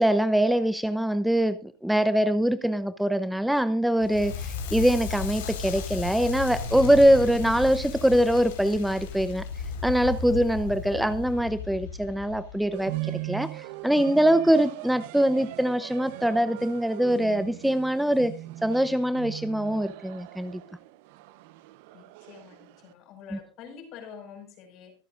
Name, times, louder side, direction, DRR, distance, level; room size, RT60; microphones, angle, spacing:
voice 1, 0.0-9.4 9.8-18.3 18.6-20.6 23.3-23.4, right 1 dB, 5° right, 12 dB, 0.7 m, -23 dB
Crackle, 4.0-13.0, left 5 dB, 85° left, 4.4 m, -35 dB
sound 1, 12.7-22.9, right 19 dB, 70° right, 0.8 m, -40 dB
voice 2, 21.9-24.9, left 6 dB, 55° left, 5 dB, 5.5 m, -46 dB
24.5 x 8.5 x 2.5 m, 0.32 s
supercardioid pair, 110°, 0 cm